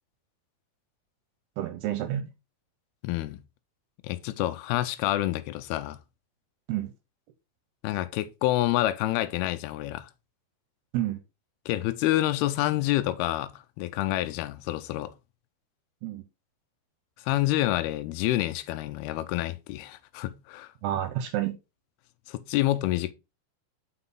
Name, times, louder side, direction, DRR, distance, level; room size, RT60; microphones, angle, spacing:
voice 1, 1.6-2.3 6.7-6.9 10.9-11.2 16.0-16.2 20.8-21.5, right 12 dB, 75° right, 2.6 m, -29 dB
voice 2, 3.0-3.4 4.0-6.0 7.8-10.1 11.7-15.1 17.2-20.7 22.3-23.1, left 15 dB, 85° left, 2.3 m, -28 dB
5.9 x 5.9 x 3.8 m
omnidirectional pair, 5.1 m